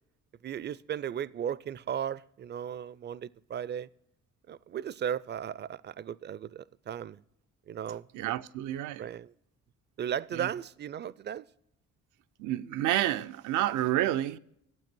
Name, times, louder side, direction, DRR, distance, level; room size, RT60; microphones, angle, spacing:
voice 1, 0.4-3.9 4.5-7.2 7.7-8.3 9.0-9.3 10.0-11.5, right 9 dB, 35° right, 0.4 m, -36 dB
voice 2, 8.1-9.1 10.3-10.5 12.4-14.4, right 13 dB, 90° right, 0.5 m, -29 dB
12.0 x 8.7 x 6.1 m
cardioid pair, 90°, 30 cm